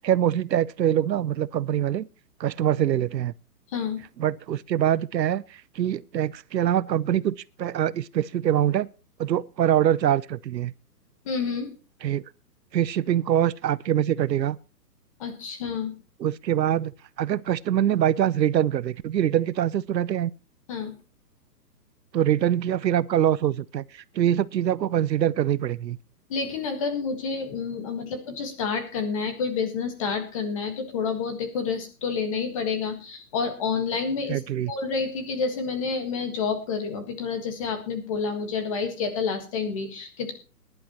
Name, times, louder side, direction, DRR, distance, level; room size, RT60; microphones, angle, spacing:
voice 1, 0.0-2.1 2.4-3.3 4.2-5.4 5.7-8.9 9.2-10.7 12.0-12.2 12.7-14.6 16.2-16.9 17.2-20.3 22.1-23.8 24.1-26.0 34.3-34.7, right 11 dB, 85° right, 0.8 m, -24 dB
voice 2, 3.7-4.0 11.2-11.7 15.2-15.9 20.7-20.9 26.3-34.4 34.7-40.3, left 5 dB, 20° left, 1.6 m, -29 dB
21.0 x 11.0 x 3.0 m
hypercardioid pair, 175°, 49 cm